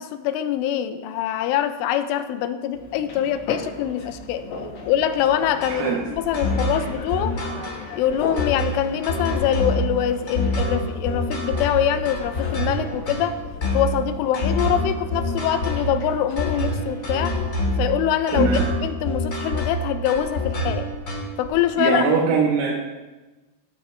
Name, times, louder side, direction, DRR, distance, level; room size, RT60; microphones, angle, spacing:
voice 1, 0.0-4.4 4.9-7.4 8.0-13.4 13.7-17.4 17.8-18.5 18.8-20.9 21.4-22.0, left 10 dB, 85° left, 10 dB, 3.2 m, -24 dB
sound 1, 2.7-17.5, left 4 dB, 65° left, 3.5 m, -38 dB
sound 2, 5.6-21.5, left 1 dB, 40° left, 1.1 m, -26 dB
voice 2, 5.7-6.0 18.3-18.6 21.8-22.8, right 5 dB, 85° right, -2 dB, 3.9 m, -21 dB
16.5 x 12.5 x 3.4 m, 1.2 s
omnidirectional pair, 5.7 m